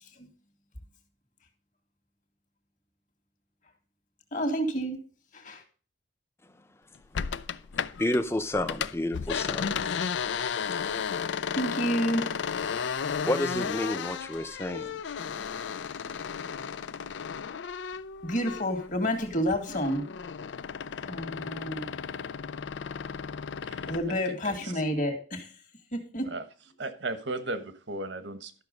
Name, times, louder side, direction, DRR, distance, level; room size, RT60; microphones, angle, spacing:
voice 1, 4.3-5.0 5.3-5.6 11.6-12.3 18.2-20.1 21.0-21.9 23.9-25.5 25.9-26.3, equal, 45° left, 1.9 m, -29 dB
sound 1, 7.1-8.2 8.5-18.9 19.2-24.1, left 6 dB, 75° left, 0.4 m, -34 dB
voice 2, 8.0-10.0 13.2-15.0 15.4-15.5 16.0-16.2, left 1 dB, 15° left, 0.7 m, -30 dB
voice 3, 23.7-24.8 26.2-26.4 26.8-28.6, right 2 dB, 75° right, 1.2 m, -36 dB
12.5 x 5.9 x 5.2 m
head